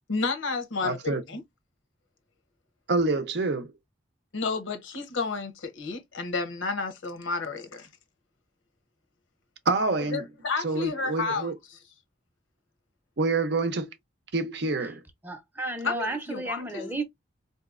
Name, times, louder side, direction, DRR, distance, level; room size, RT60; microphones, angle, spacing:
voice 1, 0.1-1.4 4.3-7.9 10.1-11.8 15.8-16.9, left 4 dB, 85° left, 0.8 m, -31 dB
voice 2, 0.8-1.2 2.9-3.7 9.7-10.2 10.6-11.5 13.2-13.9 14.3-15.0, right 3 dB, 60° right, 0.6 m, -27 dB
voice 3, 15.2-17.0, right 2 dB, 10° right, 0.7 m, -32 dB
4.0 x 2.7 x 2.4 m
head